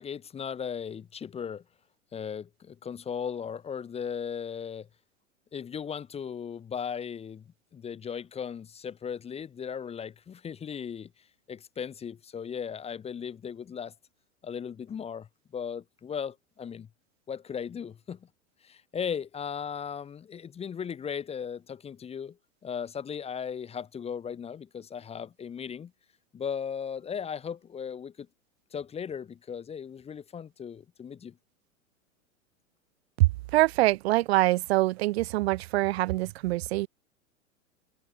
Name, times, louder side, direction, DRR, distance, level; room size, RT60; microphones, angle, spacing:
voice 1, 0.0-1.6 2.1-4.9 5.5-11.1 11.5-13.9 14.4-15.3 15.5-16.9 17.3-18.3 18.6-22.4 22.6-25.9 26.3-28.3 28.7-31.4, left 7 dB, 15° left, 0.8 m, -37 dB
voice 2, 33.5-36.9, right 18 dB, 50° right, 0.5 m, -24 dB
hypercardioid pair, 100°, 40 cm